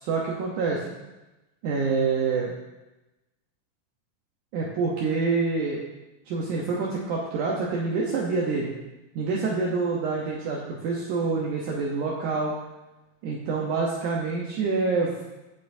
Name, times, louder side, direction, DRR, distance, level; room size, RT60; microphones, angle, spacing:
voice 1, 0.0-0.8 1.6-2.5 4.5-5.8 6.3-8.7 9.2-12.6 13.2-15.2, right 4 dB, 70° right, -3 dB, 2.1 m, -26 dB
15.5 x 5.5 x 2.6 m, 1.0 s
omnidirectional pair, 4.1 m